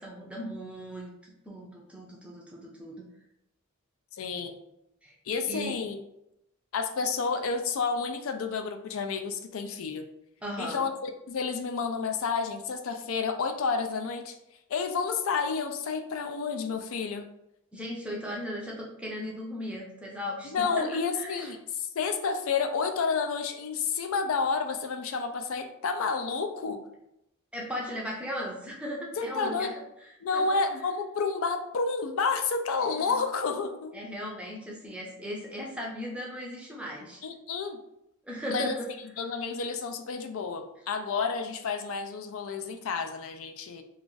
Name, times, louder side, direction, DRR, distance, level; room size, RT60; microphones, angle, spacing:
voice 1, 0.0-3.1 5.0-5.2 5.5-5.8 10.4-10.9 17.7-20.9 21.2-21.5 27.5-29.7 30.3-30.4 32.8-33.2 33.9-37.2 38.2-38.9, equal, 5° right, -2 dB, 0.5 m, -37 dB
voice 2, 4.2-4.6 5.3-6.0 6.7-10.0 10.6-14.4 14.7-17.3 20.4-26.8 29.2-29.7 30.2-34.0 37.2-37.8 38.5-38.7 39.2-43.8, left 5 dB, 65° left, 6 dB, 0.4 m, -30 dB
2.4 x 2.4 x 3.8 m, 0.83 s
head